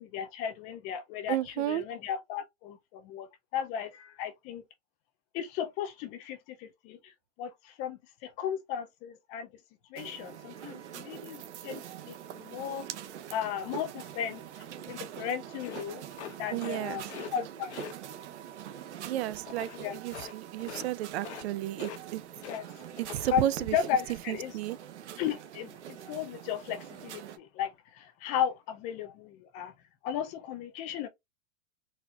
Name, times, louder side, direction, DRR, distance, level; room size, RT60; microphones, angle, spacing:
voice 1, 0.0-3.3 3.5-4.6 5.3-9.5 9.9-12.8 13.3-16.0 16.4-17.8 19.7-20.0 22.5-22.9 23.3-24.5 25.2-29.7 30.0-31.1, left 9 dB, 25° left, 0.4 m, -35 dB
voice 2, 1.3-1.8 16.5-17.0 19.1-22.2 23.0-23.8 24.3-24.8, right 13 dB, 70° right, 0.5 m, -32 dB
sound 1, 10.0-27.4, right 10 dB, 85° right, 0.8 m, -44 dB
sound 2, 15.6-16.8 17.1-17.3 17.7-17.9 19.5-19.8 20.1-20.3 20.6-20.9 21.2-21.5 21.7-22.6 22.9-23.3, left 10 dB, 75° left, 0.9 m, -43 dB
4.2 x 2.6 x 2.3 m
supercardioid pair, 145°, 33 cm